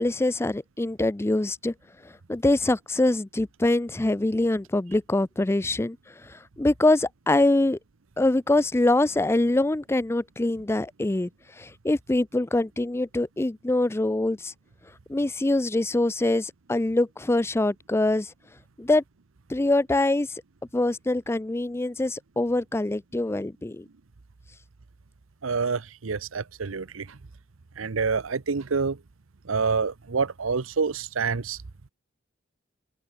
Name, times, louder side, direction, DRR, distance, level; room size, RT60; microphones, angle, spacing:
voice 1, 0.0-1.7 2.0-7.8 8.2-14.5 15.1-18.3 18.8-19.0 19.5-20.4 20.7-23.9, left 2 dB, 15° left, 0.4 m, -24 dB
voice 2, 25.4-27.2 27.8-29.0 29.4-31.6, right 5 dB, 80° right, 0.8 m, -27 dB
open air
head